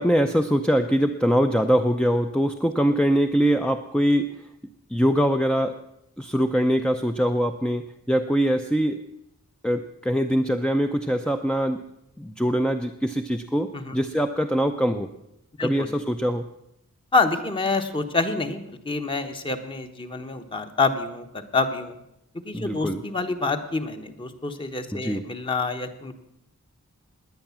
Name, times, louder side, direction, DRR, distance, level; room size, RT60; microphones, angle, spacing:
voice 1, 0.0-4.3 4.9-5.8 6.2-9.0 9.6-11.8 12.2-15.1 15.6-16.4 22.5-23.0 24.9-25.2, equal, 5° left, 7 dB, 0.5 m, -23 dB
voice 2, 17.1-22.0 22.4-26.1, left 3 dB, 25° left, 7 dB, 1.2 m, -27 dB
17.5 x 10.5 x 7.2 m, 0.82 s
head